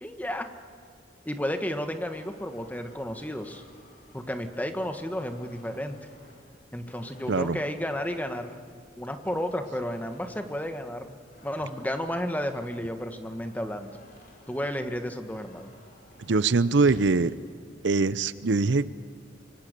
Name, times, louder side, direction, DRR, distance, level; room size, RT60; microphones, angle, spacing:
voice 1, 0.0-0.5 1.2-3.6 4.1-6.0 6.7-8.6 9.0-11.2 11.4-14.0 14.5-15.7, equal, 10° left, 7 dB, 1.4 m, -32 dB
sound 1, 2.0-17.5, left 1 dB, 50° left, 5.8 m, -54 dB
voice 2, 7.3-7.6 16.3-17.3 17.8-18.8, right 3 dB, 65° right, 16 dB, 0.6 m, -23 dB
26.0 x 23.5 x 6.8 m, 2.2 s
head